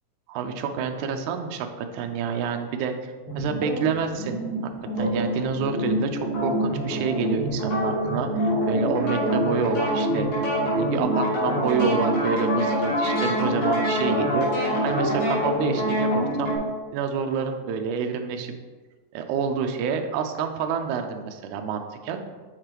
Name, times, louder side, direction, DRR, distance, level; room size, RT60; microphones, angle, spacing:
voice 1, 0.3-4.4 5.0-10.3 10.6-16.5 16.9-18.5 19.1-22.2, right 6 dB, 85° right, 5 dB, 1.7 m, -28 dB
sound 1, 3.3-16.6, equal, 80° left, 4.2 m, -25 dB
6.7 x 6.6 x 3.0 m, 1.4 s
omnidirectional pair, 4.0 m